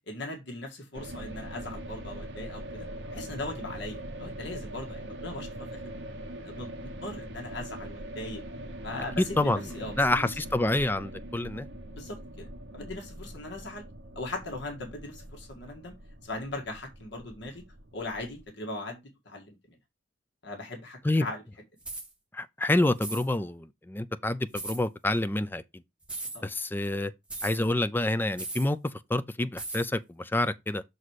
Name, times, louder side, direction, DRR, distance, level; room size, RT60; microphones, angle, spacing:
voice 1, 0.1-5.8 6.4-8.4 8.8-10.3 11.9-12.5 12.7-13.8 14.1-15.9 16.2-17.6 17.9-19.6 20.4-21.4 26.3-26.4, left 2 dB, 60° left, 1.7 m, -39 dB
sound 1, 0.9-18.4, right 1 dB, 60° right, 1.0 m, -42 dB
voice 2, 9.4-9.7 9.9-11.7 21.0-21.3 22.3-25.6 26.4-27.1 27.4-28.8 29.1-30.8, left 1 dB, 10° left, 0.4 m, -27 dB
sound 2, 21.8-22.1 23.0-23.3 24.5-24.8 26.0-26.4 27.3-27.6 28.4-28.7 29.6-29.9, right 2 dB, 5° right, 1.4 m, -37 dB
6.5 x 4.1 x 4.6 m
head